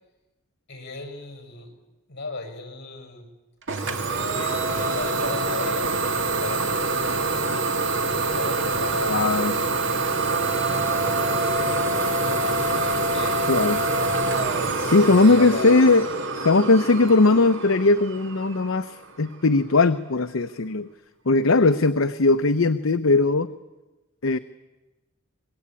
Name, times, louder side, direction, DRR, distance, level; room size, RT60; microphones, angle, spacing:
voice 1, 0.7-1.7 2.1-3.3 3.7-6.1 6.4-7.1 8.3-9.6 10.9-11.9 12.4-13.6 14.9-15.7, left 3 dB, 55° left, 6 dB, 6.3 m, -36 dB
Idling / Domestic sounds home sounds, 3.7-19.2, right 3 dB, 65° right, 2.3 m, -25 dB
voice 2, 9.1-9.5 13.5-13.8 14.8-16.1 16.4-20.9 21.3-23.5 24.2-24.4, left 3 dB, 70° left, 10 dB, 0.8 m, -19 dB
25.5 x 21.5 x 8.9 m, 1.1 s
head